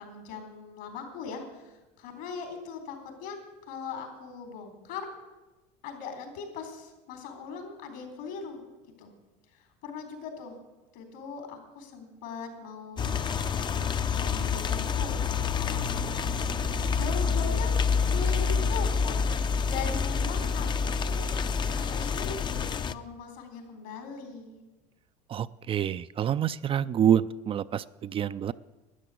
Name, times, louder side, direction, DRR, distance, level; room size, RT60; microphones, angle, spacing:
voice 1, 0.0-5.1 5.8-8.6 9.0-9.1 9.5-10.6 10.9-16.2 17.0-19.2 19.7-21.3 21.7-24.6, left 5 dB, 75° left, 5 dB, 3.9 m, -40 dB
sound 1, 13.0-22.9, left 5 dB, 30° left, 0.6 m, -28 dB
voice 2, 25.3-28.5, right 9 dB, 35° right, 14 dB, 0.4 m, -27 dB
12.5 x 10.0 x 8.4 m, 1.1 s
supercardioid pair, 100°, 17 cm